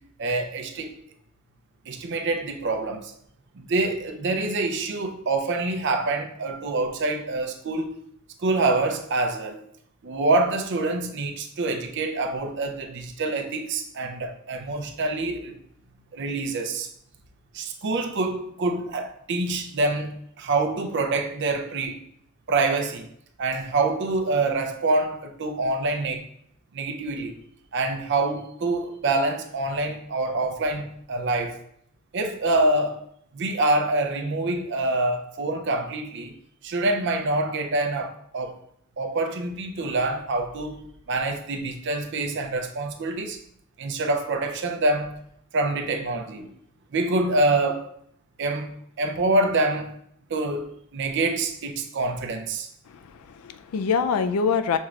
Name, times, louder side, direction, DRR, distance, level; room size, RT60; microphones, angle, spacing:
voice 1, 0.2-0.9 1.9-3.1 3.6-8.0 8.4-9.6 10.0-15.6 16.1-16.9 17.5-22.0 22.5-23.1 23.4-26.2 26.7-27.4 27.7-31.6 32.1-33.0 33.3-36.3 36.6-38.6 39.0-43.4 43.8-45.1 45.5-46.5 46.9-47.9 48.4-48.7 49.0-49.9 50.3-52.7, right 2 dB, 55° right, 0.5 m, -26 dB
voice 2, 52.9-54.8, left 5 dB, 85° left, 0.4 m, -25 dB
6.2 x 3.2 x 2.4 m
head